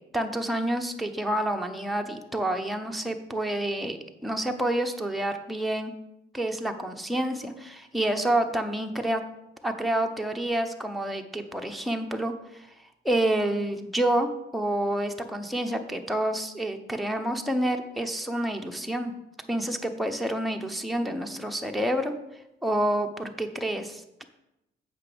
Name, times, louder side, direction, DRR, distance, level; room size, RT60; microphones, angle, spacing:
voice 1, 0.1-5.9 6.3-9.2 9.6-12.7 13.0-19.1 19.5-22.1 22.6-24.2, right 1 dB, ahead, 4 dB, 0.8 m, -28 dB
8.0 x 6.0 x 5.1 m, 0.89 s
cardioid pair, 90°, 20 cm